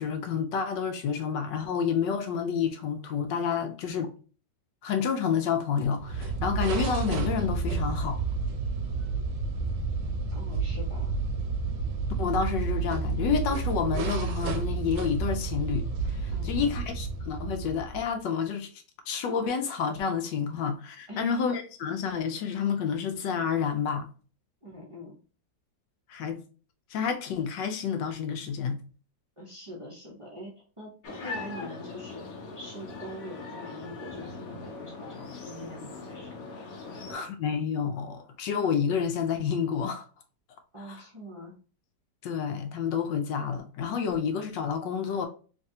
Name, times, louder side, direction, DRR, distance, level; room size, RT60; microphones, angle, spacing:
voice 1, 0.0-4.1 4.8-8.2 12.2-15.9 16.1-18.7 19.1-24.1 26.1-26.4 26.9-28.8 37.1-40.1 40.9-41.0 42.2-45.3, left 7 dB, 75° left, 1.2 m, -29 dB
sound 1, 6.0-18.2, right 4 dB, 75° right, 1.2 m, -30 dB
voice 2, 10.3-11.2 16.3-16.8 21.1-21.4 24.6-25.2 29.4-32.2 32.5-36.4 36.8-37.3 40.7-41.5 45.0-45.3, left 1 dB, 30° right, 0.5 m, -44 dB
sound 2, 31.0-37.1, left 3 dB, 60° left, 1.0 m, -41 dB
3.4 x 3.2 x 2.7 m
omnidirectional pair, 2.1 m